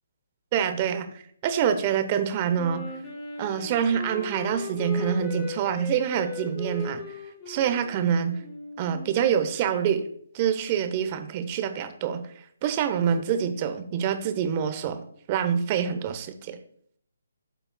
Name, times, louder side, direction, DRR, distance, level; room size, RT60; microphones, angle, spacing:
voice 1, 0.5-2.8 3.4-7.1 7.5-8.4 8.8-10.0 10.3-12.2 12.6-15.0 15.3-16.6, right 8 dB, 30° right, 9 dB, 0.8 m, -26 dB
Wind instrument woodwind instrument, 2.6-9.3, left 2 dB, 25° left, 2.8 m, -38 dB
12.5 x 5.6 x 2.2 m, 0.63 s
figure-of-eight pair, 145°, 0 cm